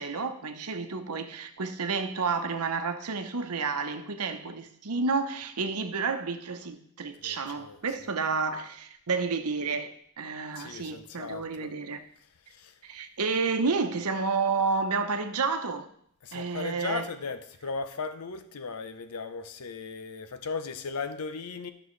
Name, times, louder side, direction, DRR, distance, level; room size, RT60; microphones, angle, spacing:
voice 1, 0.0-12.0 12.8-15.9 16.3-17.1, right 4 dB, 90° right, 0.9 m, -30 dB
voice 2, 7.2-8.1 10.6-11.7 12.5-12.7 16.2-21.7, left 4 dB, 90° left, 0.7 m, -37 dB
13.0 x 6.3 x 3.2 m
head